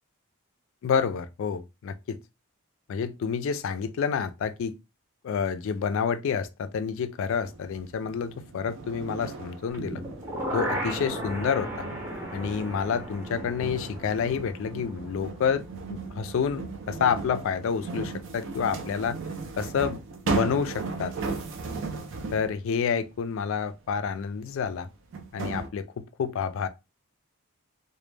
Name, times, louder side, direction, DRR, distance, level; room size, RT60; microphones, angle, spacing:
voice 1, 0.8-2.2 2.9-4.7 5.2-10.0 10.5-11.8 12.3-15.6 15.9-19.2 19.6-20.0 20.3-21.1 22.3-24.9 25.3-26.7, left 6 dB, 60° left, 0.3 m, -29 dB
sound 1, 7.4-22.6 24.3-24.4 25.1-25.7, right 4 dB, 55° right, 0.4 m, -36 dB
sound 2, 9.7-15.7 16.0-16.1, right 1 dB, 15° right, 0.6 m, -35 dB
2.1 x 2.0 x 3.2 m
head